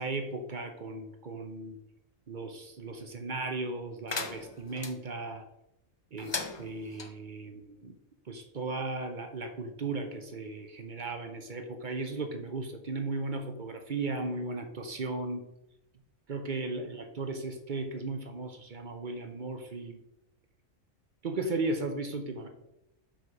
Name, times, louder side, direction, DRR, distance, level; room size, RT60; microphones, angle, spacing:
voice 1, 0.0-1.8 2.3-5.4 6.1-8.0 8.2-15.5 16.3-20.0 21.2-22.5, right 3 dB, 45° right, 6 dB, 0.7 m, -36 dB
sound 1, 4.1-4.9 6.2-7.1, left 4 dB, 40° left, 0.3 m, -37 dB
5.8 x 5.2 x 4.7 m, 0.87 s
omnidirectional pair, 1.4 m